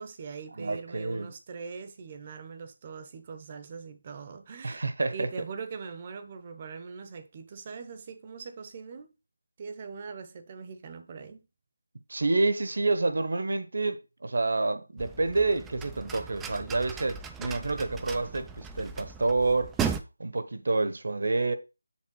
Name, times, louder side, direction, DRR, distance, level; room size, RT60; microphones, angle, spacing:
voice 1, 0.0-9.1 9.6-11.4, right 5 dB, 25° right, 0.7 m, -42 dB
voice 2, 0.6-1.3 4.6-5.3 12.1-19.8 20.2-21.5, right 3 dB, 60° right, 1.0 m, -28 dB
sound 1, 15.0-20.0, right 6 dB, 5° right, 0.3 m, -37 dB
7.5 x 3.4 x 6.2 m
figure-of-eight pair, 170°, 0 cm